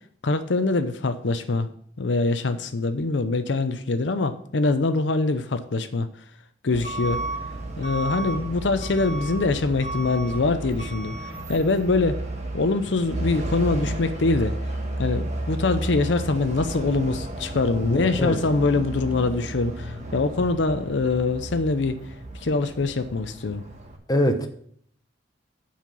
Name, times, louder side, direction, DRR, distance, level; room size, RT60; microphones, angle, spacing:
voice 1, 0.2-1.7 2.0-6.1 6.6-7.2 7.8-12.2 12.5-14.6 15.0-22.0 22.4-23.6, left 3 dB, 75° left, 9 dB, 0.6 m, -24 dB
Truck / Alarm, 6.7-24.0, right 1 dB, 40° right, 1.4 m, -32 dB
voice 2, 17.8-18.4 24.1-24.5, equal, 20° left, 5 dB, 0.9 m, -23 dB
7.4 x 5.8 x 6.9 m, 0.65 s
head